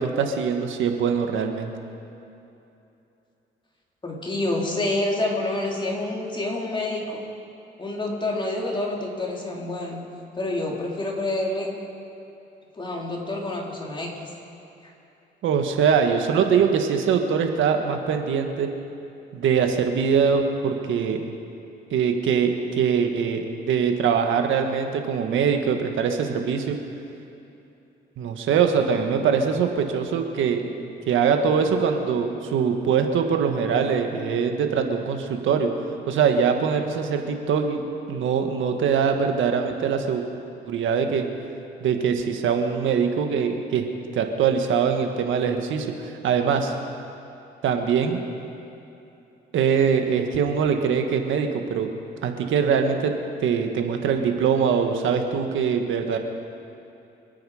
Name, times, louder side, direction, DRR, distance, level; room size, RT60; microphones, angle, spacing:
voice 1, 0.0-1.7 15.4-18.7 19.3-21.2 21.9-26.8 28.2-30.6 31.1-35.7 36.1-37.8 38.1-40.2 40.7-41.2 41.8-43.8 44.1-45.9 46.2-46.7 47.6-48.2 49.5-51.9 52.2-53.1 53.4-56.2, right 6 dB, 75° right, 5 dB, 1.6 m, -22 dB
voice 2, 4.0-7.2 7.8-10.0 10.3-11.7 12.7-14.3 14.8-14.9, left 2 dB, 25° left, -2 dB, 3.6 m, -28 dB
26.5 x 9.4 x 5.0 m, 2.8 s
cardioid pair, 90°, 20 cm